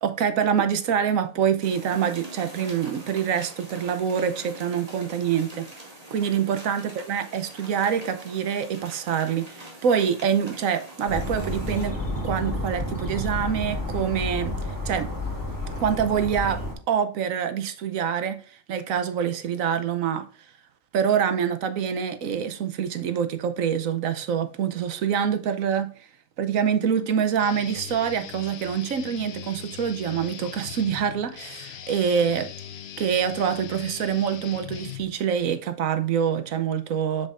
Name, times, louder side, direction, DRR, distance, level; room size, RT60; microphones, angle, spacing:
voice 1, 0.0-5.7 6.1-12.0 12.2-14.6 14.8-15.1 15.8-20.3 20.9-25.9 26.4-32.5 33.0-37.3, right 8 dB, 85° right, 1.2 m, -25 dB
Rain On Window, 1.6-11.9, right 1 dB, 30° right, 2.3 m, -44 dB
sound 1, 11.1-16.7, left 1 dB, 15° left, 2.6 m, -30 dB
Guitar, 27.4-35.4, left 10 dB, 60° left, 0.9 m, -40 dB
7.4 x 7.2 x 2.5 m
omnidirectional pair, 1.4 m